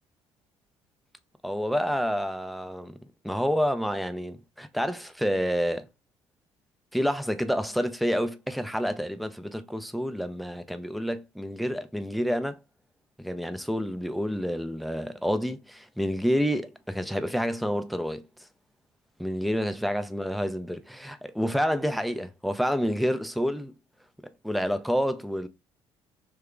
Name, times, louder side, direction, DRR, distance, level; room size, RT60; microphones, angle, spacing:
voice 1, 1.4-3.0 3.2-5.8 6.9-12.6 13.2-18.3 19.2-23.7 24.4-25.5, equal, ahead, 0.5 m, -28 dB
3.2 x 2.3 x 3.5 m
figure-of-eight pair, 50°, 15 cm